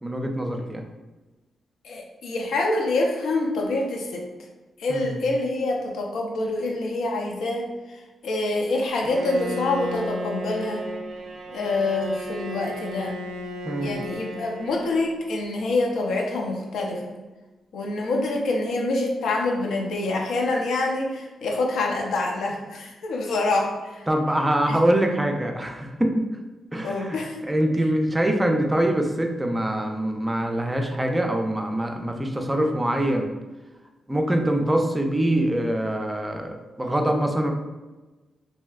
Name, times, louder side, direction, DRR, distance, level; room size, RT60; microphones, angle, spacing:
voice 1, 0.0-0.9 4.9-5.2 13.7-14.0 24.1-26.2 26.7-27.2 27.5-33.3 34.1-37.5, right 1 dB, 15° right, 3 dB, 0.4 m, -24 dB
voice 2, 1.8-4.2 4.8-10.8 11.5-13.2 13.8-17.1 17.7-24.0 24.7-24.8 26.8-27.4, left 2 dB, 85° left, 0 dB, 0.5 m, -26 dB
Bowed string instrument, 9.0-15.3, equal, 80° right, 0.4 m, -34 dB
3.1 x 2.7 x 2.3 m, 1.2 s
cardioid pair, 105°, 0 cm